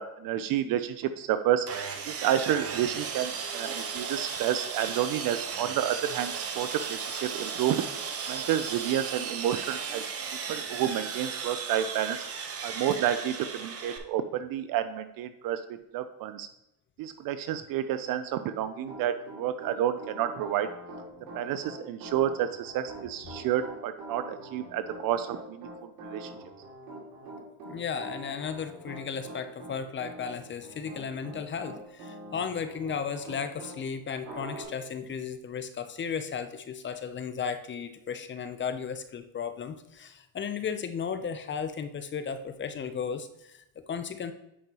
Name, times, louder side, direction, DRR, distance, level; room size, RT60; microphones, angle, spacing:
voice 1, 0.0-1.7 2.1-7.8 8.3-10.0 10.5-12.2 12.6-16.5 17.0-20.7 21.3-26.3, right 11 dB, 60° right, 11 dB, 0.5 m, -30 dB
Sawing, 1.7-14.0, right 6 dB, 35° right, 0.9 m, -35 dB
Piano, 18.6-33.8 34.2-34.6, right 2 dB, 90° right, 2.5 m, -44 dB
voice 2, 27.7-44.3, left 6 dB, 30° left, 10 dB, 0.6 m, -35 dB
8.5 x 5.2 x 3.0 m, 0.87 s
supercardioid pair, 95°, 40 cm